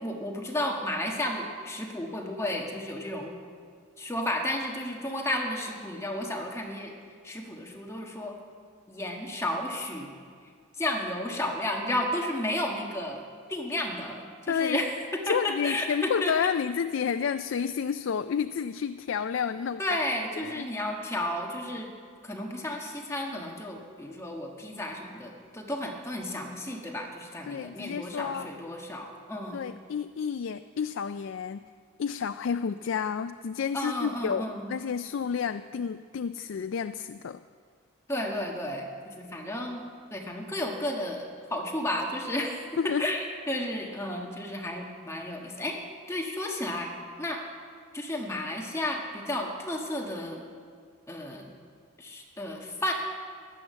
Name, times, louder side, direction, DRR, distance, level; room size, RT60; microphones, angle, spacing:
voice 1, 0.0-3.4 4.0-6.9 7.2-8.4 8.9-10.1 10.8-13.2 13.5-14.9 15.3-16.3 19.8-21.9 22.2-29.6 33.7-34.8 38.1-39.8 40.1-46.9 47.2-47.4 47.9-50.4 51.1-51.5 52.0-52.9, left 1 dB, 15° left, 0 dB, 1.4 m, -32 dB
voice 2, 14.5-14.8 15.3-19.8 20.4-20.7 27.5-28.5 29.5-31.6 32.0-37.4 42.8-43.0, left 7 dB, 60° left, 11 dB, 0.3 m, -30 dB
15.0 x 11.0 x 7.5 m, 2.1 s
head